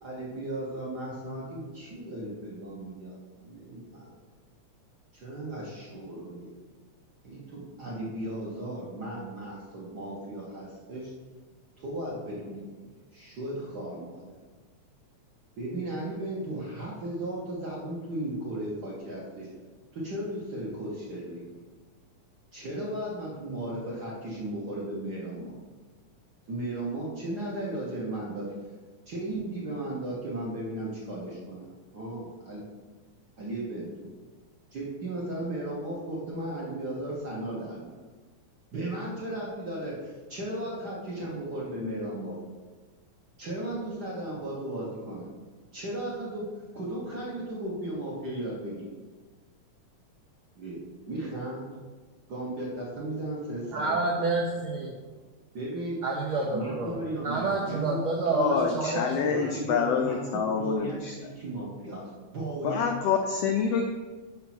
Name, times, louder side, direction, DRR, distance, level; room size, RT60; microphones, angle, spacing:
voice 1, 0.0-4.1 5.1-6.5 7.2-11.1 11.8-12.6 13.1-14.4 15.6-19.5 19.9-21.5 22.5-25.6 26.5-28.5 29.1-32.6 33.4-34.1 34.7-38.0 38.7-42.3 43.4-45.3 45.7-48.9 50.6-51.7 52.3-53.9 54.3-54.6 55.5-56.0 56.5-58.0 58.3-58.7 59.3-62.9, right 1 dB, 50° right, -4 dB, 1.2 m, -35 dB
voice 2, 53.7-54.9 56.0-56.9 57.2-59.3, right 3 dB, 80° right, -1 dB, 1.2 m, -28 dB
voice 3, 58.3-60.9 62.6-63.8, left 7 dB, 85° left, 3 dB, 1.4 m, -27 dB
5.8 x 5.6 x 6.0 m, 1.4 s
omnidirectional pair, 3.5 m